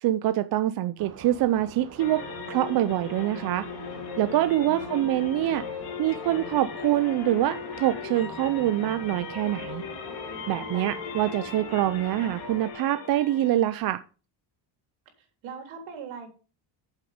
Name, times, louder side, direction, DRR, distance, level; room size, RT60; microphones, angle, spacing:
voice 1, 0.0-2.2 2.5-3.7 4.2-5.6 6.0-9.8 10.5-14.0, right 13 dB, 50° right, 11 dB, 0.5 m, -25 dB
sound 1, 1.0-12.7, right 5 dB, 30° right, 1.5 m, -46 dB
sound 2, 2.0-13.9, left 6 dB, 50° left, 2.7 m, -38 dB
voice 2, 4.6-5.2 10.7-11.3 15.4-16.3, right 5 dB, 75° right, 3 dB, 3.7 m, -42 dB
8.7 x 7.4 x 5.0 m, 0.35 s
cardioid pair, 170°, 48 cm